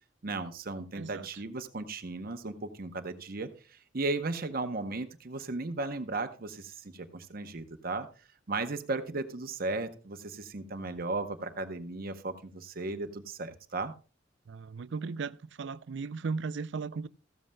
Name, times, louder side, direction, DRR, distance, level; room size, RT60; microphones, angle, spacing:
voice 1, 0.2-8.1 8.5-13.9, right 3 dB, 50° right, 0.8 m, -36 dB
voice 2, 0.9-1.3 14.5-17.1, right 4 dB, 70° right, 0.5 m, -36 dB
15.0 x 12.5 x 2.2 m
head